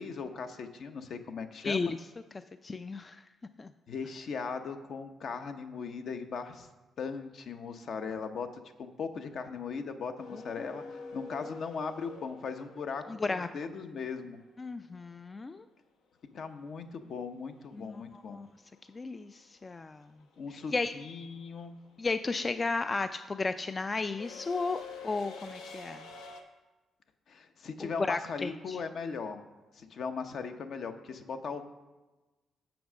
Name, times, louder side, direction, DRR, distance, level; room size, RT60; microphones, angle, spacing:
voice 1, 0.0-1.9 3.9-6.7 7.0-14.4 16.3-18.4 20.4-21.8 27.3-29.4 29.7-31.7, left 5 dB, 60° left, 7 dB, 0.8 m, -38 dB
voice 2, 1.6-2.0 2.6-3.2 3.6-3.7 10.3-10.7 13.1-13.5 14.6-15.7 17.7-18.5 18.9-20.2 20.5-20.9 22.0-26.1 27.8-28.8, left 3 dB, 30° left, 10 dB, 0.3 m, -34 dB
sound 1, 10.2-14.2 16.7-16.8 18.0-18.4 18.6-26.4, left 4 dB, 90° left, 0.9 m, -47 dB
7.4 x 6.0 x 6.1 m, 1.1 s
cardioid pair, 90°, 0 cm